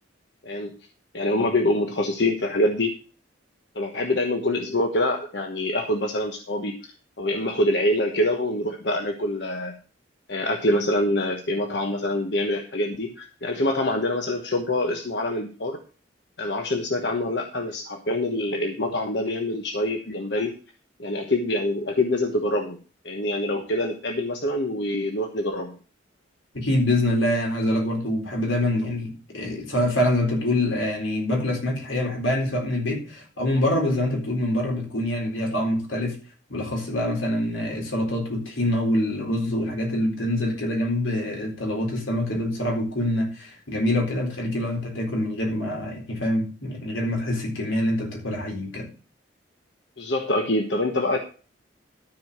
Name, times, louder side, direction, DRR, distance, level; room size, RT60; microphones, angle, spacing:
voice 1, 0.4-0.7 1.1-2.9 3.7-9.7 10.3-15.8 16.4-20.5 21.0-22.8 23.0-25.8 50.0-51.2, left 1 dB, 60° left, 1.2 m, -25 dB
voice 2, 26.5-36.2 36.5-48.9, left 1 dB, 90° left, 4.1 m, -25 dB
13.0 x 4.9 x 6.7 m
head